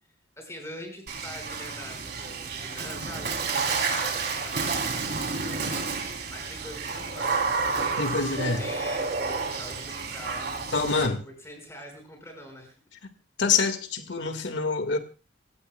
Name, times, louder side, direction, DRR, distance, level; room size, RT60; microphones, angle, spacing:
voice 1, 0.4-5.7 6.3-7.6 7.9-10.7 11.2-12.7, left 1 dB, 15° left, 2 dB, 5.0 m, -44 dB
Water / Splash splatter, 1.1-11.1, right 4 dB, 55° right, 3.1 m, -30 dB
voice 2, 8.0-8.6 10.7-11.2 13.4-15.0, left 4 dB, 65° left, 7 dB, 1.7 m, -26 dB
27.0 x 16.5 x 2.2 m, 0.33 s
head